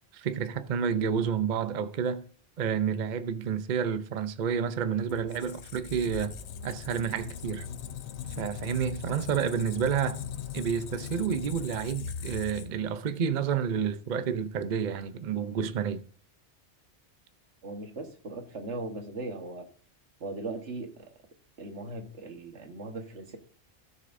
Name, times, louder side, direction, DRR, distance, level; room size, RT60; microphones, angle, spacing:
voice 1, 0.1-2.2 2.6-6.4 6.6-7.7 8.4-10.2 10.5-16.0, right 7 dB, 50° right, 0.7 m, -30 dB
Squeak, 5.1-12.9, left 7 dB, 75° left, 0.9 m, -40 dB
voice 2, 17.6-19.7 20.2-21.1 21.6-23.4, right 2 dB, 85° right, 1.7 m, -38 dB
16.5 x 6.6 x 2.6 m
omnidirectional pair, 1.2 m